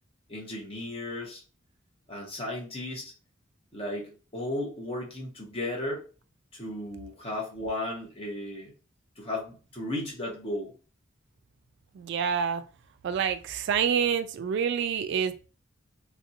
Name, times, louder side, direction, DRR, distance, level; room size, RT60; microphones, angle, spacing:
voice 1, 0.3-1.4 2.1-3.1 3.7-6.0 6.5-8.7 9.2-10.7, left 1 dB, 30° left, 0.9 m, -35 dB
voice 2, 12.0-12.6 13.0-15.5, right 7 dB, 60° right, 0.3 m, -27 dB
3.3 x 2.6 x 2.8 m
head